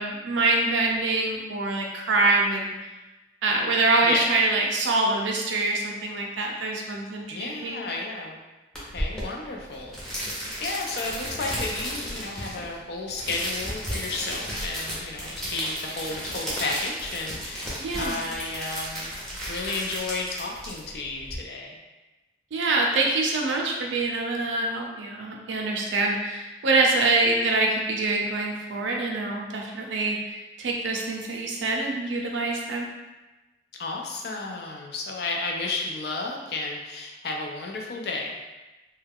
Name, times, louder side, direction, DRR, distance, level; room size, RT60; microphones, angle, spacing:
voice 1, 0.0-2.7 3.4-7.8 17.8-18.2 22.5-32.9, right 2 dB, 85° right, 0 dB, 0.5 m, -25 dB
voice 2, 7.3-8.4 8.9-10.0 10.6-19.1 19.5-21.8 33.7-38.4, left 3 dB, 60° left, 0 dB, 0.4 m, -32 dB
sound 1, 8.7-21.4, equal, 5° left, 0.6 m, -34 dB
2.3 x 2.2 x 3.4 m, 1.1 s
head